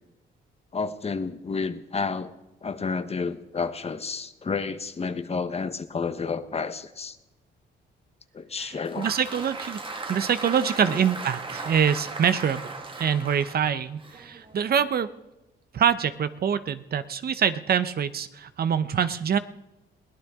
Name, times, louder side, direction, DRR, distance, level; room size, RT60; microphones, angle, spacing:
voice 1, 0.7-2.3 2.6-7.2 8.3-9.1 10.8-11.0, left 4 dB, 30° left, 11 dB, 1.1 m, -30 dB
Applause, 8.6-14.9, right 3 dB, 25° right, 1.6 m, -37 dB
voice 2, 8.6-9.8 10.1-12.7 13.0-15.1 15.7-19.4, right 8 dB, 50° right, 12 dB, 0.8 m, -25 dB
22.5 x 17.0 x 3.7 m, 0.98 s
cardioid pair, 90°, 20 cm